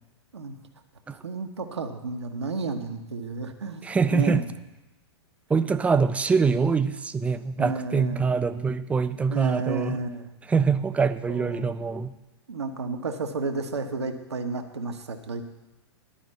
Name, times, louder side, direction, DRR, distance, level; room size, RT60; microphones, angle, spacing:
voice 1, 1.2-4.5 7.6-8.2 9.3-10.3 11.3-11.7 12.5-15.4, right 3 dB, 80° right, 5 dB, 1.1 m, -32 dB
voice 2, 3.8-4.4 5.5-10.0 10.5-12.1, right 5 dB, 10° right, 12 dB, 0.4 m, -24 dB
11.5 x 5.1 x 8.1 m, 1.0 s
figure-of-eight pair, 105°, 14 cm